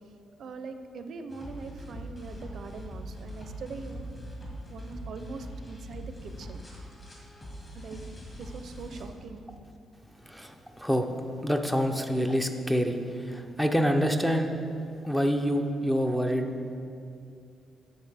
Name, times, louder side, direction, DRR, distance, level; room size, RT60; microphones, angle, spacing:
voice 1, 0.4-4.1 4.7-6.6 7.7-8.0 8.4-9.4, right 4 dB, 55° right, 8 dB, 0.5 m, -42 dB
sound 1, 1.3-9.0, equal, 35° left, 1.8 m, -42 dB
voice 2, 10.2-11.1 11.4-14.5 15.0-16.5, equal, 5° left, 5 dB, 0.4 m, -27 dB
10.5 x 7.0 x 3.4 m, 2.6 s
cardioid pair, 140°, 0 cm